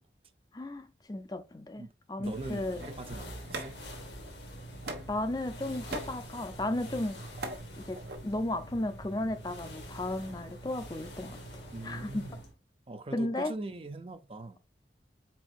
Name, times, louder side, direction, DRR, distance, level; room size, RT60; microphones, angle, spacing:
voice 1, 0.5-1.8 2.1-2.8 3.5-3.7 5.1-7.2 7.8-12.3 13.1-13.5, left 1 dB, 20° left, 0.5 m, -34 dB
sound 1, 2.2-12.5, equal, 90° left, 1.6 m, -45 dB
voice 2, 2.2-3.8 11.7-12.4 12.9-14.6, right 2 dB, 30° right, 0.5 m, -42 dB
sound 2, 2.8-4.3 4.8-5.2 5.6-6.2 7.0-7.6 7.9-8.2, right 2 dB, 70° right, 1.1 m, -40 dB
4.4 x 4.3 x 2.4 m
head